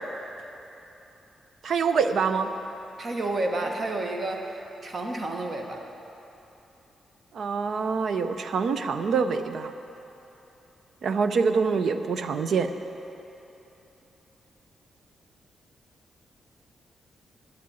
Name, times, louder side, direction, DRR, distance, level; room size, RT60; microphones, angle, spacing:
voice 1, 1.6-2.5 7.3-9.7 11.0-12.7, right 5 dB, 60° right, 9 dB, 0.5 m, -25 dB
voice 2, 3.0-5.8, right 2 dB, 35° right, 2 dB, 1.0 m, -30 dB
9.3 x 7.6 x 7.1 m, 3.0 s
wide cardioid pair, 145°, 0 cm